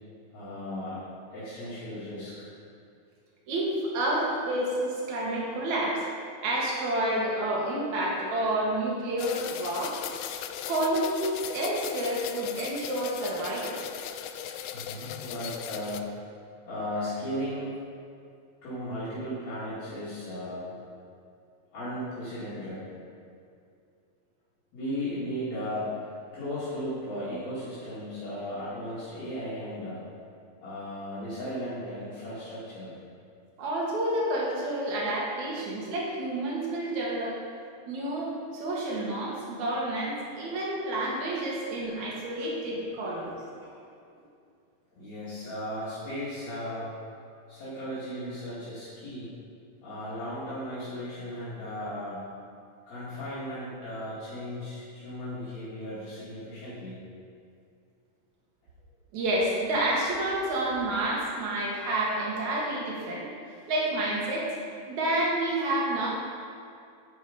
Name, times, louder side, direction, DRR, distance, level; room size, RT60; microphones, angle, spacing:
voice 1, 0.3-1.0 1.3-2.5 14.7-16.1 16.7-17.7 18.6-20.9 21.7-22.8 24.7-26.0 26.3-30.0 30.6-33.0 42.4-42.5 44.9-47.0 47.5-49.3 49.8-52.2 52.9-57.0, equal, 65° left, -12 dB, 3.5 m, -36 dB
voice 2, 3.5-6.0 6.4-9.9 10.7-13.8 33.6-37.4 37.9-43.4 59.1-63.3 63.7-64.5 64.9-66.1, right 1 dB, 75° right, -4 dB, 3.2 m, -29 dB
sound 1, 9.2-16.0, left 10 dB, 85° left, 1.4 m, -38 dB
9.2 x 7.8 x 5.2 m, 2.4 s
omnidirectional pair, 3.3 m